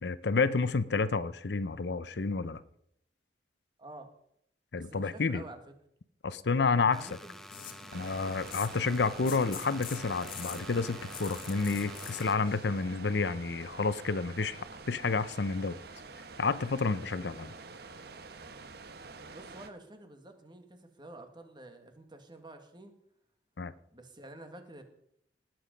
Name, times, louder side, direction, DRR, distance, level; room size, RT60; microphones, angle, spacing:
voice 1, 0.0-2.6 4.7-5.4 6.2-7.1 7.9-15.8 16.4-17.5 23.6-23.7, left 4 dB, 70° left, 15 dB, 0.7 m, -30 dB
voice 2, 3.8-4.1 4.7-5.6 6.7-7.4 19.3-22.9 23.9-24.8, right 2 dB, 25° right, 6 dB, 1.8 m, -49 dB
sound 1, 6.9-12.4, equal, ahead, 1.0 m, -48 dB
sound 2, 7.5-13.0, left 8 dB, 55° left, 1.5 m, -46 dB
sound 3, 7.9-19.7, right 4 dB, 65° right, 1.1 m, -48 dB
19.5 x 7.9 x 5.2 m, 0.73 s
head